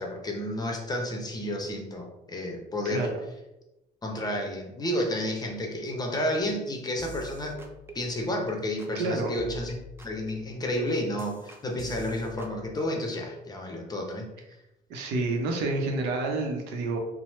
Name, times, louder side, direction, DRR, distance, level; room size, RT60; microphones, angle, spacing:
voice 1, 0.0-3.1 4.0-7.6 7.9-9.8 10.0-14.3, left 1 dB, 25° left, 1 dB, 0.6 m, -31 dB
voice 2, 2.8-3.2 8.9-9.3 14.9-17.0, right 2 dB, 90° right, 2 dB, 0.6 m, -29 dB
sound 1, 7.0-8.5 8.8-9.1 9.4-12.6, right 2 dB, 15° right, 0.4 m, -46 dB
3.0 x 2.0 x 3.0 m, 0.95 s
cardioid pair, 110°, 17 cm